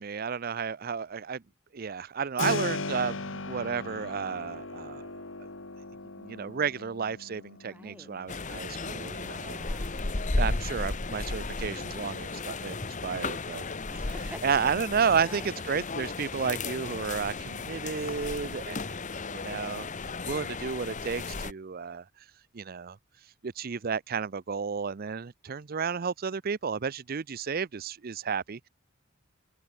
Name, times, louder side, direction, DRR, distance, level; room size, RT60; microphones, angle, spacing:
voice 1, 0.0-1.4 1.7-5.1 6.2-9.6 10.4-13.6 14.4-19.0 19.3-19.9 20.2-22.0 22.5-23.0 23.4-28.7, right 6 dB, 45° right, 0.5 m, -32 dB
Keyboard (musical), 2.4-13.1, left 3 dB, 65° left, 2.0 m, -40 dB
voice 2, 7.7-8.1 9.5-9.9 13.9-15.5 20.2-20.6, right 1 dB, 10° right, 1.3 m, -48 dB
sound 1, 8.3-21.5, left 3 dB, 40° left, 1.2 m, -34 dB
head